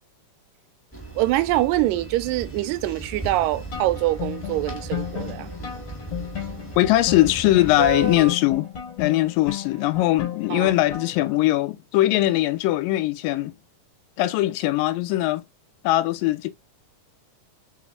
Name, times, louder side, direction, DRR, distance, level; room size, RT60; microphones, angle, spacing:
sound 1, 0.9-8.3, equal, 5° left, 1.3 m, -34 dB
voice 1, 1.2-5.5 10.5-10.7, right 16 dB, 85° right, 2.3 m, -24 dB
sound 2, 3.7-11.4, left 10 dB, 60° left, 2.3 m, -34 dB
voice 2, 6.8-8.7 9.0-13.5 14.2-15.4 15.8-16.5, left 16 dB, 90° left, 2.3 m, -21 dB
5.2 x 4.1 x 2.3 m
omnidirectional pair, 3.9 m